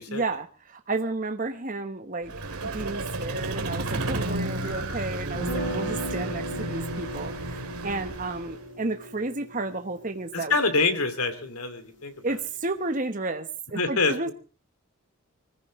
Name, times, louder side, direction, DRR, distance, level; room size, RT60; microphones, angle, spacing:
voice 1, 0.1-10.5 12.2-14.3, right 2 dB, 35° right, 6 dB, 1.1 m, -32 dB
Vehicle, 2.2-8.7, right 2 dB, 85° right, 2.6 m, -33 dB
sound 1, 5.3-11.3, right 1 dB, 55° left, 6.6 m, -36 dB
voice 2, 10.3-12.4 13.7-14.1, left 3 dB, 85° left, 9 dB, 2.7 m, -26 dB
24.5 x 15.5 x 3.2 m, 0.35 s
head